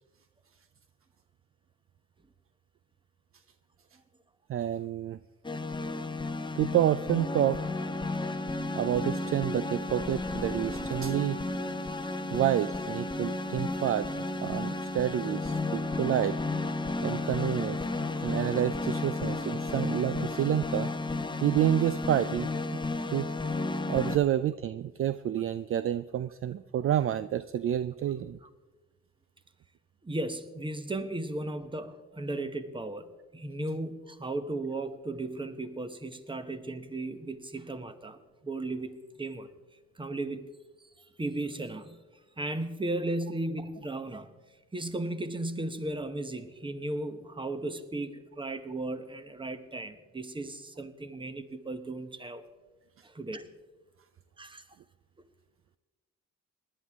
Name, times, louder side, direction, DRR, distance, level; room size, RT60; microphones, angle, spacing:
voice 1, 4.5-5.2 6.6-7.6 8.7-11.4 12.3-14.1 14.4-16.4 17.0-17.8 18.2-20.9 21.4-22.5 23.1-23.3 23.9-28.4, right 11 dB, 45° right, 14 dB, 0.4 m, -29 dB
sound 1, 5.4-24.2, left 2 dB, 15° left, 0.8 m, -33 dB
voice 2, 30.0-39.5 40.0-40.5 41.2-42.0 42.4-44.3 44.7-52.4 53.0-53.5 54.4-54.6, right 2 dB, 15° right, 10 dB, 1.1 m, -36 dB
19.5 x 11.0 x 3.6 m, 1.2 s
cardioid pair, 90°, 30 cm